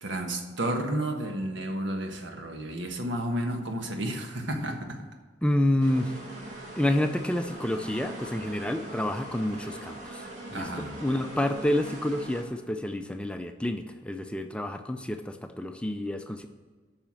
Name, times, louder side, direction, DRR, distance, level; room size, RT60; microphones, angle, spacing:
voice 1, 0.0-5.0 10.5-10.9, right 1 dB, 85° right, 4 dB, 1.4 m, -32 dB
voice 2, 5.4-6.1 6.8-10.3 10.5-16.5, left 1 dB, 5° left, 7 dB, 0.4 m, -29 dB
sound 1, 5.8-12.4, right 1 dB, 40° right, 2.0 m, -41 dB
9.0 x 5.7 x 7.3 m, 1.4 s
head